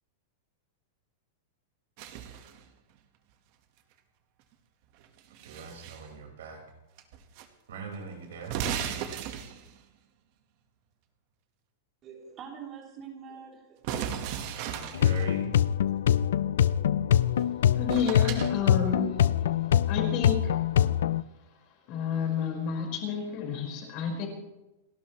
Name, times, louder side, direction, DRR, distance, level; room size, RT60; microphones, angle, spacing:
sound 1, 2.0-2.6 5.0-6.1 7.0-7.5 7.7-7.8 8.4-9.8 13.8-15.3 17.4-17.5 17.9-18.5, right 9 dB, 40° right, 1.5 m, -36 dB
voice 1, 5.4-6.6 7.7-8.6 14.3-15.5, right 6 dB, 85° right, 1 dB, 5.1 m, -41 dB
voice 2, 12.0-14.1, right 7 dB, 25° right, 0 dB, 3.3 m, -45 dB
sound 2, 14.9-21.2, left 10 dB, 80° left, 0.5 m, -24 dB
voice 3, 17.7-19.3 19.8-20.6 21.9-24.3, left 6 dB, 40° left, 0 dB, 5.0 m, -30 dB
30.0 x 11.5 x 3.2 m, 0.99 s
supercardioid pair, 165°, 0 cm